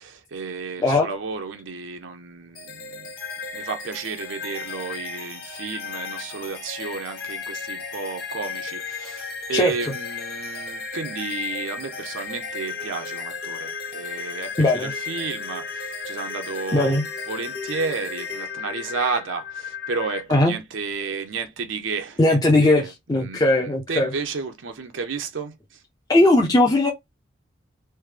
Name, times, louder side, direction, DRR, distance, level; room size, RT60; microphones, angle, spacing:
voice 1, 0.0-3.1 3.5-25.6, right 4 dB, 90° right, 0.6 m, -32 dB
sound 1, 2.6-20.2, left 5 dB, 50° left, 0.9 m, -34 dB
voice 2, 14.6-14.9 16.7-17.0 20.3-20.5 22.2-24.1 26.1-26.9, left 2 dB, 20° left, 0.4 m, -18 dB
3.2 x 2.1 x 3.2 m
head